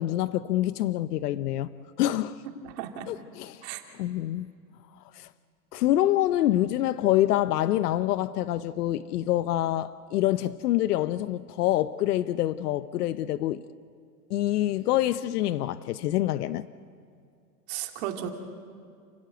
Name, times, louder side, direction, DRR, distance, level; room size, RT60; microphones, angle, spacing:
voice 1, 0.0-1.7 2.0-2.4 3.1-3.6 4.0-4.5 5.1-5.3 5.7-13.6 14.3-16.7, left 14 dB, 80° left, 0.8 m, -26 dB
voice 2, 2.6-3.1 3.6-3.8 17.7-18.3, right 11 dB, 45° right, 2.4 m, -34 dB
30.0 x 14.5 x 9.3 m
supercardioid pair, 170°, 46 cm